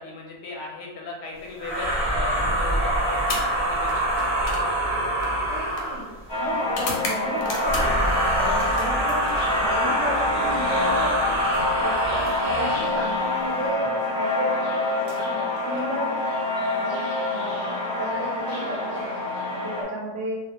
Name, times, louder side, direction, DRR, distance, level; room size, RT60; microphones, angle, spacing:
voice 1, 0.0-3.2 3.5-4.1, left 3 dB, 65° left, -2 dB, 0.7 m, -37 dB
sound 1, 1.6-6.2 7.5-13.0, right 1 dB, 30° right, 0.6 m, -25 dB
sound 2, 3.2-8.1 8.5-9.7 11.0-12.8 13.9-14.1 14.9-16.1, left 3 dB, 90° left, 1.0 m, -38 dB
voice 2, 5.5-6.1 6.4-8.0 8.3-11.2 11.6-16.3 16.8-17.0 17.3-20.4, right 1 dB, 70° right, -4 dB, 0.8 m, -33 dB
sound 3, 6.3-19.8, left 2 dB, 20° left, 0.6 m, -27 dB
2.3 x 2.1 x 2.7 m, 1.1 s
omnidirectional pair, 1.4 m